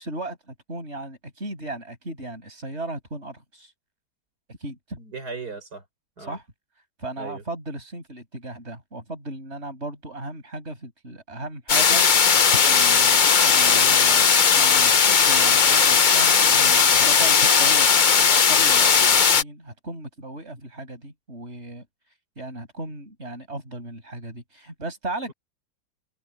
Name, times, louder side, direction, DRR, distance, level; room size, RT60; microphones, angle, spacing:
voice 1, 0.0-3.7 4.5-5.0 6.2-6.4 7.0-17.9 18.2-21.8 22.4-25.3, right 2 dB, 35° right, 8.5 m, -36 dB
voice 2, 5.0-5.8 6.2-6.4 7.2-7.4, right 4 dB, 60° right, 5.3 m, -37 dB
sound 1, 11.7-19.4, left 6 dB, 45° left, 0.6 m, -17 dB
omnidirectional pair, 1.9 m